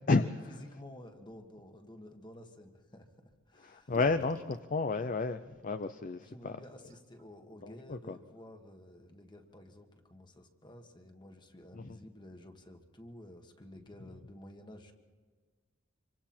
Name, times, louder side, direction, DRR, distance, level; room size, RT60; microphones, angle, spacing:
voice 1, 0.1-3.9 6.1-14.9, left 1 dB, 25° left, 5 dB, 1.7 m, -52 dB
sound 1, 3.3-3.4 3.8-4.8 5.8-5.9 6.5-6.6 6.8-7.2, equal, 40° right, 1.3 m, -52 dB
voice 2, 3.6-6.6 7.6-8.2 11.7-12.0, left 3 dB, 40° left, 10 dB, 0.6 m, -31 dB
26.0 x 24.5 x 4.4 m, 1.5 s
head